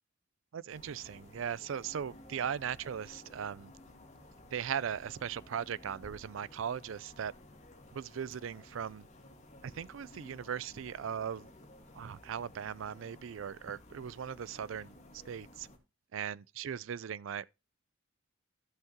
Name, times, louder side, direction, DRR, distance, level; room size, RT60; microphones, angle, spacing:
voice 1, 0.5-3.7 4.5-7.3 7.9-9.1 9.6-11.5 11.9-15.7 16.1-17.5, right 8 dB, 65° right, 0.4 m, -38 dB
sound 1, 0.7-15.8, left 1 dB, 35° left, 1.7 m, -55 dB
14.0 x 5.8 x 2.9 m
head